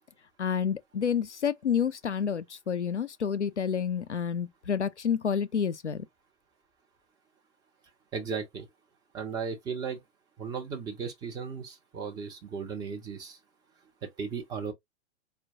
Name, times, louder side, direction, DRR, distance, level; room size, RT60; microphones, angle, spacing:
voice 1, 0.4-6.0, left 7 dB, 90° left, 0.5 m, -29 dB
voice 2, 8.1-8.7 9.1-10.0 10.4-13.4 14.0-14.7, right 6 dB, 10° right, 0.5 m, -36 dB
4.4 x 2.2 x 2.7 m
figure-of-eight pair, 110°, 34 cm